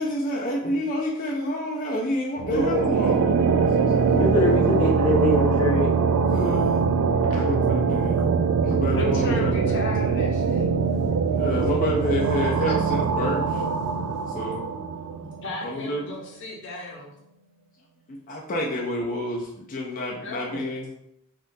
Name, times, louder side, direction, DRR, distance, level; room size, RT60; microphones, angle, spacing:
voice 1, 0.0-3.2 6.1-6.9 7.2-8.2 8.6-9.8 11.3-13.6 14.3-14.6 15.2-16.1 18.3-20.9, left 1 dB, 40° left, -2 dB, 0.4 m, -29 dB
sound 1, 2.4-15.5, right 5 dB, 85° right, 0.3 m, -23 dB
voice 2, 2.5-3.1 4.1-5.9 7.3-7.5 11.4-11.7, equal, 90° left, -1 dB, 0.7 m, -24 dB
voice 3, 9.0-10.7 12.4-12.6 15.4-17.1 20.2-20.7, left 1 dB, 55° left, -1 dB, 0.8 m, -34 dB
3.6 x 2.4 x 2.6 m, 0.77 s
head